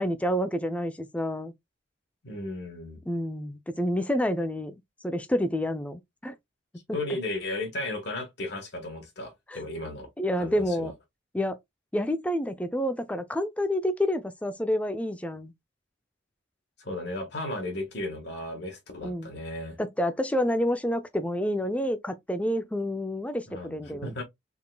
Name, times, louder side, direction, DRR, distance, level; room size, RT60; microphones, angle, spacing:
voice 1, 0.0-1.5 3.1-4.7 5.0-6.3 9.5-9.6 10.2-10.9 11.3-11.6 11.9-15.5 19.0-19.3 19.8-24.1, equal, 5° left, 0.4 m, -28 dB
voice 2, 2.2-3.0 6.9-10.1 10.4-10.9 16.8-19.8 23.5-24.2, left 2 dB, 60° left, 1.3 m, -35 dB
3.7 x 3.6 x 2.2 m
head